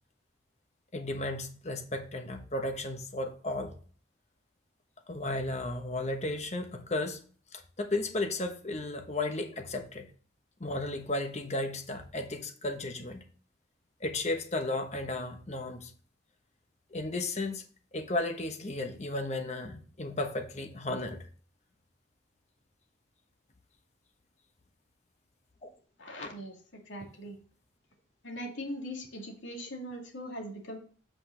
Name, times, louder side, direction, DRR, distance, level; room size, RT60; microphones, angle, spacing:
voice 1, 0.9-3.7 5.1-7.2 7.5-10.1 10.6-13.2 14.0-15.9 16.9-17.6 17.9-21.2 25.6-25.7 26.2-26.3, left 2 dB, 35° left, 1.1 m, -34 dB
voice 2, 26.0-26.6 26.9-27.4 28.2-30.8, equal, 85° left, 2.4 m, -40 dB
8.2 x 5.2 x 3.8 m
head